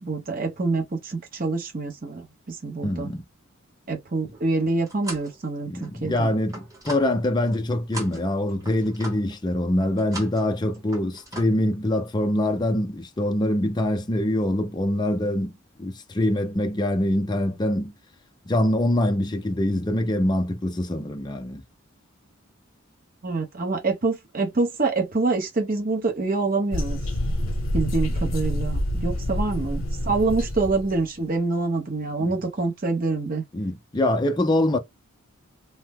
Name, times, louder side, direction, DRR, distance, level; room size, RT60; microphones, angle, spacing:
voice 1, 0.0-3.1 3.9-6.3 23.2-27.0 27.7-33.4, right 3 dB, 40° right, 0.8 m, -26 dB
voice 2, 2.8-3.2 5.7-15.5 15.8-17.9 18.5-21.6 32.2-32.3 33.5-34.8, left 1 dB, 20° left, 0.4 m, -24 dB
sound 1, 4.3-5.4 5.8-7.6 7.9-9.4 9.8-10.5 10.7-11.5, right 1 dB, 15° right, 0.9 m, -39 dB
sound 2, 26.7-31.0, left 1 dB, 70° left, 0.8 m, -27 dB
2.8 x 2.0 x 3.4 m
head